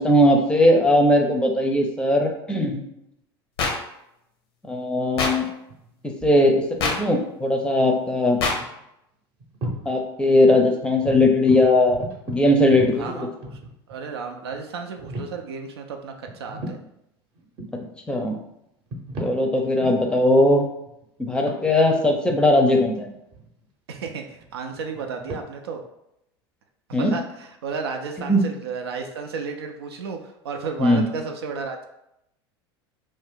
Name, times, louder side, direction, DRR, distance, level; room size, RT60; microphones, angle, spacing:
voice 1, 0.0-2.8 4.7-5.5 6.0-8.4 9.9-13.2 18.1-18.4 19.2-20.7 21.2-23.1 26.9-27.1 28.3-28.4 30.8-31.0, left 1 dB, 5° left, 2 dB, 0.5 m, -19 dB
sound 1, 3.6-3.7 5.2-5.3 6.8-6.9 8.4-8.5, left 4 dB, 80° left, 0.7 m, -22 dB
sound 2, 5.7-6.5 8.3-8.4 8.6-8.8 9.4-10.0 10.3-10.4 10.8-14.0 14.5-14.6 15.0-15.4 16.3-16.9 17.4-17.9 18.6-19.4 19.8-20.0 20.6-23.6 24.0-25.4, right 1 dB, 45° right, 0.7 m, -36 dB
voice 2, 13.0-13.6 13.9-16.8 23.9-25.8 26.9-31.8, right 5 dB, 85° right, 4 dB, 0.4 m, -33 dB
2.5 x 2.1 x 3.6 m, 0.81 s
hypercardioid pair, 90°, 13 cm